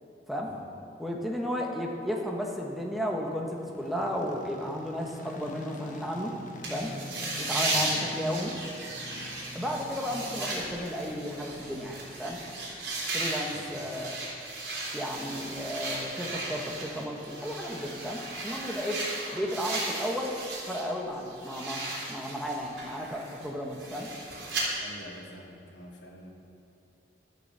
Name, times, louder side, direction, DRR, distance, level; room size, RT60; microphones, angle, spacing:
voice 1, 1.0-6.3 6.7-6.9 7.4-8.5 9.5-12.4 13.1-14.2 14.9-19.0 19.3-20.3 20.7-24.1, equal, ahead, -1 dB, 1.3 m, -33 dB
sound 1, 3.5-17.6, left 1 dB, 45° left, 1.1 m, -45 dB
sound 2, 6.6-20.9 21.2-24.6, right 2 dB, 75° right, 3.7 m, -36 dB
voice 2, 7.6-8.0 13.5-13.7 24.8-26.3, equal, 75° left, -3 dB, 2.5 m, -47 dB
11.5 x 9.4 x 6.9 m, 2.6 s
head